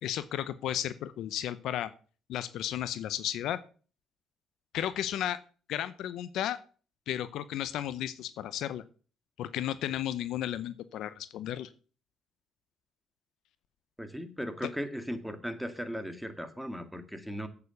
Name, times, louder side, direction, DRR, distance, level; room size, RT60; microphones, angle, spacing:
voice 1, 0.0-1.9 2.3-3.6 4.7-5.4 5.7-6.6 7.1-8.8 9.4-11.7 14.6-14.7, left 11 dB, 75° left, 15 dB, 0.6 m, -34 dB
voice 2, 14.0-17.5, equal, ahead, 8 dB, 2.0 m, -37 dB
8.3 x 7.0 x 6.9 m, 0.39 s
supercardioid pair, 70°, 0 cm